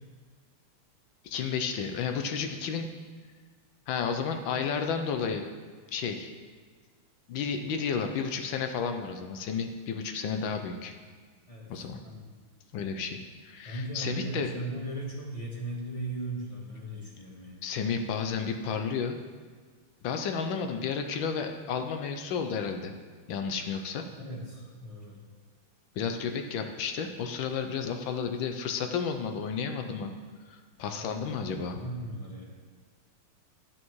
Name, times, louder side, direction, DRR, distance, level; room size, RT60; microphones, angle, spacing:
voice 1, 1.2-2.9 3.9-5.5 5.9-6.3 7.3-10.9 11.7-12.0 12.7-14.5 17.6-19.2 20.0-22.9 23.3-24.1 26.0-30.1 30.5-31.8, left 6 dB, 70° left, 6 dB, 1.3 m, -32 dB
voice 2, 11.5-12.3 13.6-17.6 24.1-25.2 30.9-31.3 31.6-32.5, right 1 dB, 20° left, -4 dB, 1.3 m, -38 dB
11.0 x 8.9 x 3.1 m, 1.5 s
omnidirectional pair, 2.4 m